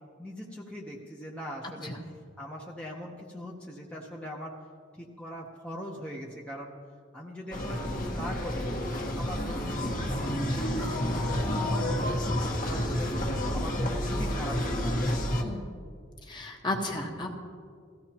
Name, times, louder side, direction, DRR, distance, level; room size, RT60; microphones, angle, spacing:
voice 1, 0.2-1.9 2.4-4.6 5.0-6.7 7.1-8.7 9.1-13.1 13.5-15.0, equal, 5° left, -3 dB, 0.9 m, -41 dB
sound 1, 7.5-15.4, left 1 dB, 45° left, 1.5 m, -30 dB
voice 2, 16.2-17.3, left 2 dB, 25° left, 1 dB, 1.2 m, -33 dB
17.5 x 15.0 x 2.9 m, 2.1 s
head